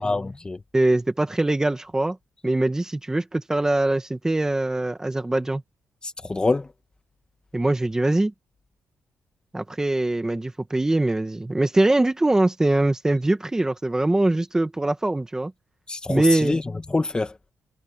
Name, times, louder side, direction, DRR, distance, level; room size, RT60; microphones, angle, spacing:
voice 1, 0.0-0.6 6.0-6.7 15.9-16.6 16.9-17.4, left 3 dB, 20° left, 1.9 m, -25 dB
voice 2, 0.7-2.2 2.4-5.6 7.5-8.3 9.5-15.5 16.1-16.6, right 2 dB, 10° right, 1.5 m, -22 dB
cardioid pair, 140°, 5 cm